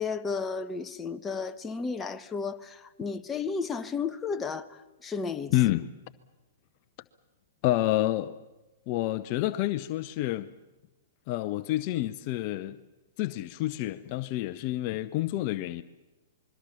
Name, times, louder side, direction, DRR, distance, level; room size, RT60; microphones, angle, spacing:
voice 1, 0.0-5.5, left 5 dB, 15° left, 1.1 m, -33 dB
voice 2, 5.5-5.9 7.6-8.4 8.9-10.5 11.3-12.8 13.2-15.8, left 15 dB, 45° left, 0.7 m, -28 dB
26.0 x 22.5 x 7.2 m
hypercardioid pair, 115°, 0 cm